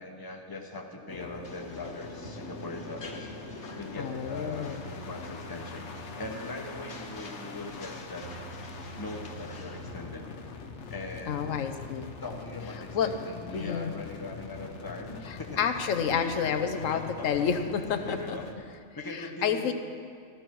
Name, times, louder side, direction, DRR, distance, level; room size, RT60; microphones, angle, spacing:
voice 1, 0.0-3.3 3.8-8.3 9.0-10.3 10.9-11.6 12.2-15.6 16.1-18.6 19.0-19.7, left 2 dB, 20° left, 2 dB, 1.0 m, -40 dB
sound 1, 1.1-18.5, left 4 dB, 65° left, 1.2 m, -43 dB
sound 2, 1.4-9.9, left 2 dB, 50° left, 1.6 m, -51 dB
sound 3, 2.2-10.3, right 3 dB, 45° right, 0.7 m, -48 dB
voice 2, 4.0-4.9 11.3-12.2 12.9-13.1 13.5-13.9 15.3-18.4 19.1-19.7, left 7 dB, 85° left, 7 dB, 1.2 m, -30 dB
13.5 x 13.5 x 4.6 m, 2.3 s
omnidirectional pair, 1.3 m